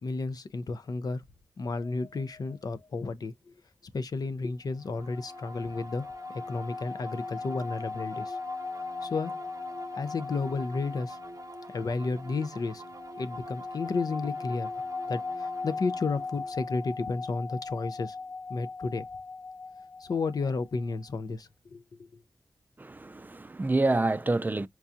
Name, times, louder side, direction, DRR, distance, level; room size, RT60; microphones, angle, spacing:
voice 1, 0.0-1.2 1.6-3.5 3.9-8.4 9.0-9.3 10.0-11.2 11.7-12.8 13.2-14.7 15.1-18.2 18.5-19.1 20.0-22.1, left 4 dB, 70° left, 0.6 m, -32 dB
sound 1, 1.7-2.9 4.9-21.0, left 4 dB, 20° left, 0.7 m, -39 dB
sound 2, 4.8-18.3, right 3 dB, 55° right, 0.7 m, -48 dB
voice 2, 22.8-24.7, right 2 dB, 25° right, 0.4 m, -27 dB
4.5 x 2.3 x 2.6 m
cardioid pair, 45°, 7 cm